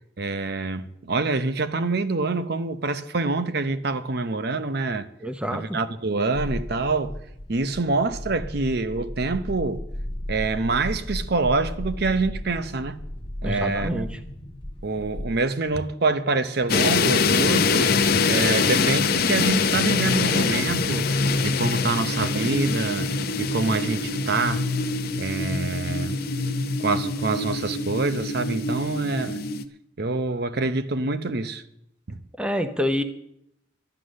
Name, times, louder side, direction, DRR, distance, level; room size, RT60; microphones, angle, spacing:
voice 1, 0.2-5.1 5.5-7.2 7.5-9.9 10.3-13.0 13.4-14.1 14.8-17.9 18.3-23.1 23.4-24.6 25.2-26.2 26.8-29.4 30.0-31.6 32.1-32.2, right 3 dB, 55° right, 0.8 m, -26 dB
voice 2, 5.2-5.8 13.4-14.2 32.4-33.0, equal, 5° right, 0.8 m, -27 dB
sound 1, 6.3-15.7, left 1 dB, 25° left, 1.3 m, -35 dB
sound 2, 16.7-29.6, left 4 dB, 50° left, 0.7 m, -24 dB
12.0 x 9.6 x 6.4 m
head